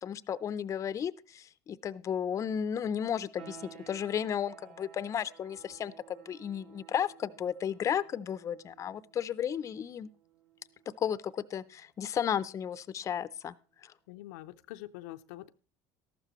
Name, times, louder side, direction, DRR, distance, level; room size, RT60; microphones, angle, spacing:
voice 1, 0.0-10.1 11.0-13.5 13.8-13.9, left 8 dB, 35° left, 17 dB, 0.5 m, -34 dB
sound 1, 3.4-13.9, right 8 dB, 60° right, 2.0 m, -57 dB
voice 2, 14.1-15.5, left 16 dB, 85° left, 9 dB, 0.5 m, -45 dB
13.5 x 12.0 x 3.0 m, 0.37 s
supercardioid pair, 95°, 9 cm